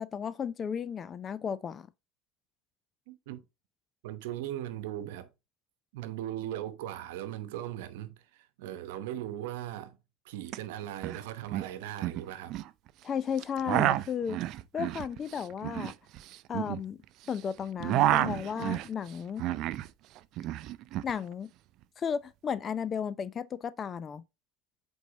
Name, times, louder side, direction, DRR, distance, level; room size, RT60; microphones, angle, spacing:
voice 1, 0.0-1.9 13.0-14.4 14.7-15.9 16.5-17.0 17.3-19.5 21.0-21.5 22.0-24.2, left 7 dB, 30° left, 0.5 m, -34 dB
voice 2, 3.1-3.4 4.0-5.3 5.9-10.0 10.2-12.5, right 12 dB, 85° right, 1.0 m, -38 dB
sound 1, 10.5-10.6 10.8-11.2 11.5-12.7 13.4-17.3 17.6-19.9 20.2-21.1, right 14 dB, 55° right, 0.5 m, -30 dB
8.3 x 4.5 x 2.9 m
supercardioid pair, 130°, 0 cm